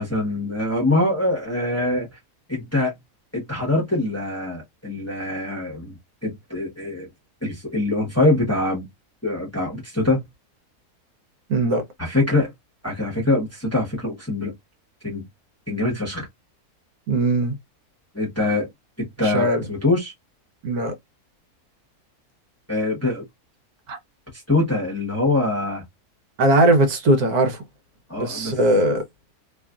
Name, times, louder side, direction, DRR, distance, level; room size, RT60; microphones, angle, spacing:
voice 1, 0.0-2.1 2.5-2.9 3.3-7.1 7.4-8.9 9.2-10.2 12.0-12.5 12.8-14.5 15.0-15.2 15.7-16.3 18.1-18.7 19.0-20.1 22.7-23.2 24.5-25.8 28.1-28.6 28.9-29.0, left 2 dB, 10° left, 1.0 m, -23 dB
voice 2, 11.5-11.8 17.1-17.5 19.2-19.6 20.6-20.9 23.9-24.0 26.4-27.6 28.2-29.0, right 1 dB, 75° right, 1.4 m, -19 dB
3.0 x 2.4 x 2.4 m
omnidirectional pair, 1.7 m